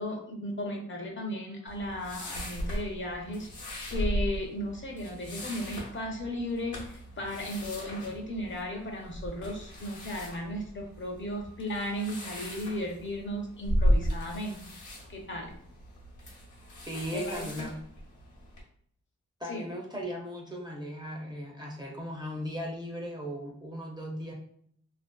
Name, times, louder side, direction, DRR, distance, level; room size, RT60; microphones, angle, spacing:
voice 1, 0.0-3.5 3.9-14.7 15.1-15.5 17.1-17.5 19.5-19.7, equal, 40° left, 2 dB, 0.5 m, -35 dB
sound 1, 1.7-18.6, equal, 85° left, 0.8 m, -35 dB
voice 2, 16.8-17.8 19.4-24.3, equal, 15° right, -2 dB, 0.5 m, -37 dB
2.5 x 2.3 x 2.2 m, 0.65 s
wide cardioid pair, 95°, 29 cm